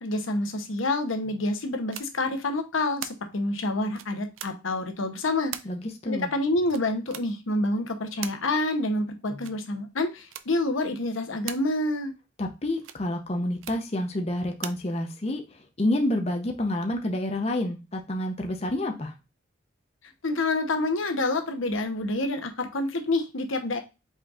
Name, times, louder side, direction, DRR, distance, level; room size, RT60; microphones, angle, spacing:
voice 1, 0.0-5.5 6.1-12.1 20.2-23.8, left 2 dB, 85° left, 0.8 m, -27 dB
sound 1, 1.9-2.1 3.0-3.1 3.9-4.5 5.5-5.7 6.7-7.2 8.2-8.4 9.4-9.6 10.3-10.4 11.5-11.6 12.8-13.0 13.6-13.8 14.6-14.8, right 11 dB, 85° right, 0.4 m, -37 dB
voice 2, 5.6-6.3 12.4-19.1, left 1 dB, 30° left, 0.7 m, -29 dB
5.2 x 4.0 x 2.4 m
head